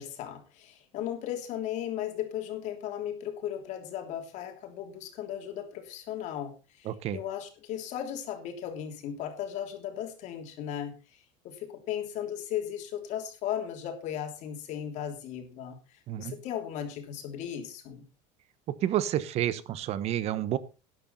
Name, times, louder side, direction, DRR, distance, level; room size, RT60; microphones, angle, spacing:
voice 1, 0.0-10.9 11.4-18.0, left 10 dB, 55° left, 4 dB, 3.2 m, -36 dB
voice 2, 6.9-7.2 16.1-16.4 18.7-20.6, right 11 dB, 45° right, 16 dB, 1.1 m, -30 dB
12.5 x 10.5 x 4.2 m, 0.31 s
cardioid pair, 145°, 15 cm